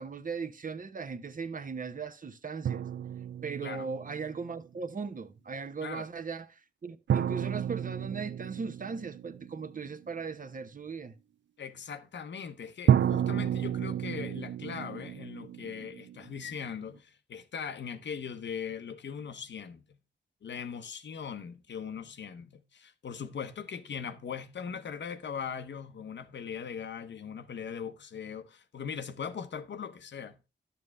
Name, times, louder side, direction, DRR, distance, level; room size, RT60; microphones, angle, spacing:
voice 1, 0.0-2.8 3.4-11.1, right 5 dB, 50° right, 0.9 m, -38 dB
sound 1, 2.6-4.5 7.1-9.9 12.9-16.7, right 9 dB, 90° right, 0.5 m, -31 dB
voice 2, 11.6-19.8 20.4-30.5, left 7 dB, 80° left, 0.9 m, -40 dB
11.0 x 7.1 x 3.4 m
wide cardioid pair, 110°, 18 cm